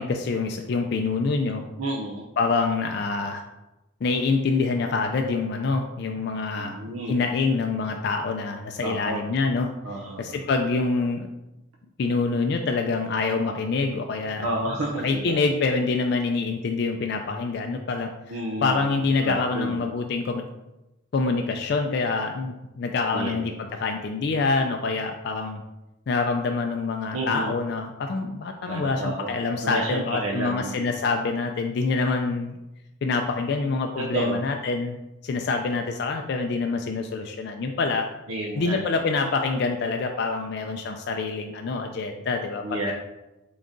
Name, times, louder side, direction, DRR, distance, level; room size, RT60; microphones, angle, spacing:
voice 1, 0.0-1.6 2.4-3.4 4.0-6.8 7.1-9.7 10.2-11.3 12.0-14.5 15.0-20.5 21.1-23.5 23.8-25.6 26.1-32.6 33.0-35.0 35.2-38.1 38.6-42.9, left 4 dB, 50° left, 4 dB, 0.3 m, -26 dB
voice 2, 1.8-2.2 6.5-7.2 8.8-9.2 9.8-10.4 14.4-15.4 18.3-19.8 23.1-23.4 27.1-27.6 28.7-29.3 29.6-30.9 34.0-34.4 38.3-38.9 42.6-42.9, right 1 dB, 90° right, -1 dB, 0.6 m, -30 dB
3.8 x 3.6 x 3.8 m, 0.98 s
head